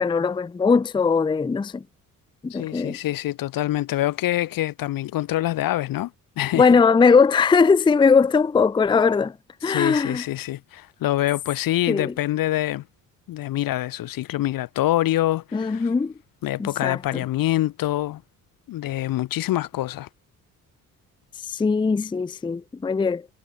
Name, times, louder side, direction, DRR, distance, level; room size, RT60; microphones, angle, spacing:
voice 1, 0.0-1.8 2.4-3.0 6.5-9.4 9.6-10.2 11.9-12.1 15.5-16.1 16.6-17.2 21.4-23.3, left 5 dB, 10° left, 0.5 m, -20 dB
voice 2, 2.5-6.1 6.4-6.7 9.7-12.8 13.3-15.9 16.4-18.2 18.7-20.1, left 14 dB, 50° left, 0.7 m, -25 dB
hypercardioid pair, 50°, 43 cm